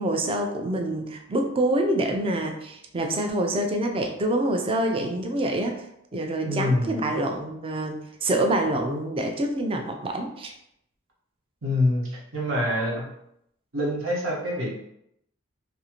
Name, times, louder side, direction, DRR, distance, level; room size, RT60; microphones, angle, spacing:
voice 1, 0.0-5.9 6.1-10.5, right 1 dB, 25° right, 3 dB, 0.4 m, -26 dB
voice 2, 6.4-7.1 11.6-13.1 13.7-14.7, left 1 dB, 75° right, -4 dB, 0.9 m, -26 dB
2.6 x 2.4 x 2.9 m, 0.77 s
head